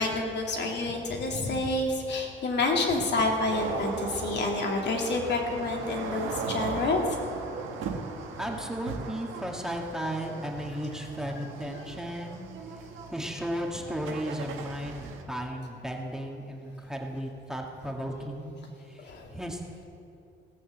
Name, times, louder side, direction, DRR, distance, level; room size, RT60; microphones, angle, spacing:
voice 1, 0.0-7.0 19.0-19.3, left 2 dB, 60° left, 0 dB, 2.5 m, -28 dB
sound 1, 3.5-15.2, right 5 dB, 90° right, 1.4 m, -38 dB
voice 2, 8.4-12.5 13.1-18.6 18.9-19.8, equal, 5° right, 0 dB, 1.8 m, -35 dB
17.5 x 6.5 x 7.9 m, 2.6 s
cardioid pair, 90°, 20 cm